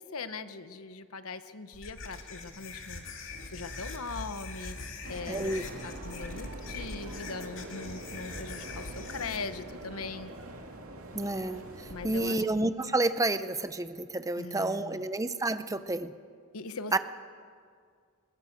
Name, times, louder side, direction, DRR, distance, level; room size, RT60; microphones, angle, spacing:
voice 1, 0.0-4.8 5.1-5.6 5.8-10.3 11.9-12.4 14.4-15.1 16.5-17.0, left 4 dB, 90° left, 10 dB, 1.1 m, -40 dB
sound 1, 1.7-9.4, left 3 dB, 65° left, 2.4 m, -42 dB
sound 2, 5.0-12.4, right 1 dB, 80° right, 2.5 m, -44 dB
voice 2, 5.3-5.6 11.1-16.1 16.9-17.0, right 2 dB, 15° right, 11 dB, 0.7 m, -30 dB
21.0 x 19.5 x 6.7 m, 2.1 s
head